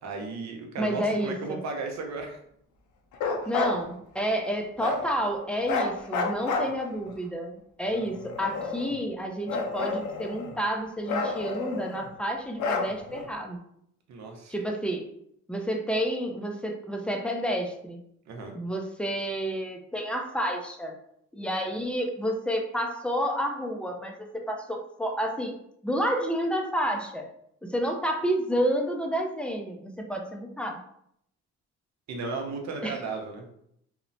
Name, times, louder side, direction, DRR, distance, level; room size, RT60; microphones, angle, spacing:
voice 1, 0.0-2.4 14.1-14.5 18.3-18.6 32.1-33.5, right 3 dB, 65° right, 2 dB, 0.7 m, -35 dB
voice 2, 0.8-1.6 3.5-13.6 14.5-15.1 15.5-18.0 18.5-21.0 21.3-25.5 25.8-27.3 27.6-30.8 32.8-33.0, equal, 5° left, 2 dB, 0.3 m, -30 dB
Bark, 3.1-3.8 4.8-5.1 5.6-7.1 7.9-9.0 9.5-10.6 11.1-12.1 12.6-13.3, left 4 dB, 75° left, 0.5 m, -30 dB
2.9 x 2.0 x 2.6 m, 0.72 s
cardioid pair, 90°, 30 cm